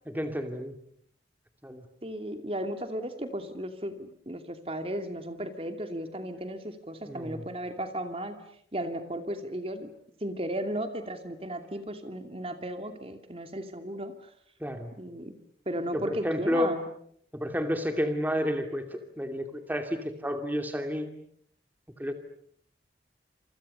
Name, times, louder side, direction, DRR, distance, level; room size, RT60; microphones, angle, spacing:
voice 1, 0.1-0.8 1.6-1.8 7.1-7.4 14.6-15.0 15.9-16.8 17.3-21.1 22.0-22.1, equal, 10° right, 5 dB, 2.4 m, -31 dB
voice 2, 2.0-8.4 8.7-9.9 10.2-14.3 15.0-15.3 15.7-16.8, right 1 dB, 35° right, 7 dB, 2.7 m, -35 dB
29.5 x 27.5 x 6.8 m, 0.65 s
head